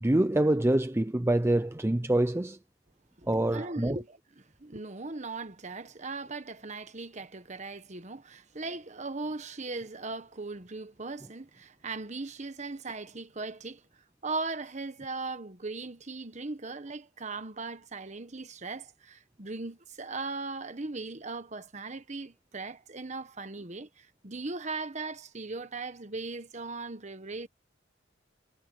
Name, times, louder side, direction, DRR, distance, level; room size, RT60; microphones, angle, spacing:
voice 1, 0.0-2.6 3.3-4.0, right 1 dB, 15° right, 0.5 m, -26 dB
voice 2, 3.2-13.8 14.2-27.5, right 3 dB, 40° right, 1.3 m, -38 dB
head